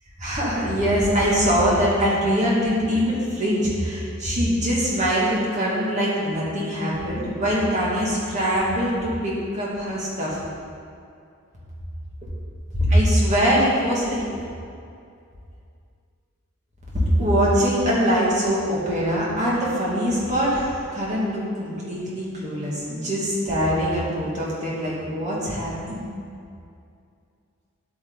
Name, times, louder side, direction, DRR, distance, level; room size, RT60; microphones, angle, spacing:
voice 1, 0.2-10.4 12.7-14.2 16.9-26.0, equal, 35° right, -6 dB, 2.3 m, -23 dB
9.6 x 8.7 x 4.0 m, 2.4 s
head